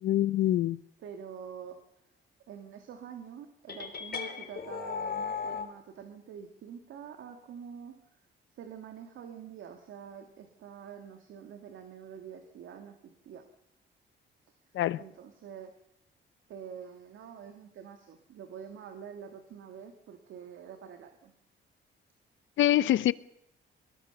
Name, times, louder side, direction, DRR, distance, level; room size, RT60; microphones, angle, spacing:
voice 1, 0.0-0.8 14.7-15.0 22.6-23.1, left 13 dB, 75° left, 0.8 m, -25 dB
voice 2, 1.0-1.8 2.5-7.9 8.5-13.0 13.2-13.5 15.0-15.7 16.5-21.3, right 8 dB, 75° right, 2.3 m, -46 dB
sound 1, 3.7-5.7, left 6 dB, 50° left, 3.5 m, -36 dB
22.0 x 20.0 x 7.0 m
cardioid pair, 90°, 20 cm